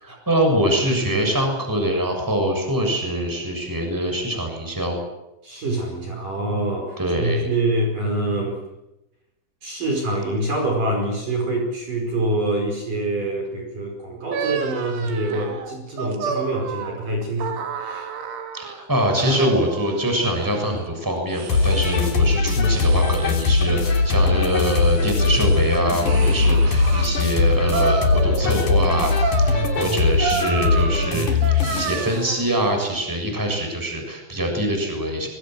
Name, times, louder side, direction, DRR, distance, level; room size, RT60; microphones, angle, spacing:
voice 1, 0.0-5.0 7.0-7.5 18.5-31.3 31.7-35.3, right 1 dB, 5° right, 3 dB, 6.6 m, -24 dB
voice 2, 5.4-8.6 9.6-18.1, right 2 dB, 40° right, 2 dB, 6.3 m, -25 dB
sound 1, 14.3-18.8 19.2-20.7 21.3-22.3 22.7-23.7 24.2-27.1 27.7-28.7 29.0-32.5, right 5 dB, 70° right, 4.9 m, -31 dB
sound 2, 21.5-32.1, left 3 dB, 40° left, 4.4 m, -20 dB
25.5 x 23.5 x 7.8 m, 0.91 s
omnidirectional pair, 5.7 m